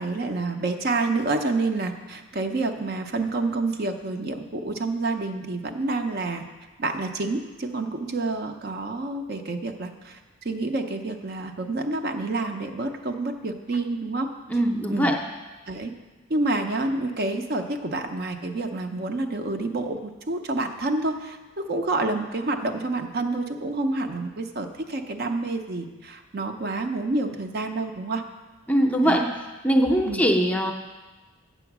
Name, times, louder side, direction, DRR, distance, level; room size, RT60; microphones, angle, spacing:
voice 1, 0.0-6.4 6.8-14.3 14.9-15.1 15.7-15.9 16.3-28.2 29.0-29.2 30.1-30.2, right 2 dB, 50° right, 5 dB, 0.6 m, -28 dB
voice 2, 14.5-15.3 28.7-29.4 29.6-30.7, equal, 10° left, 2 dB, 0.6 m, -21 dB
8.1 x 7.0 x 6.0 m, 1.2 s
head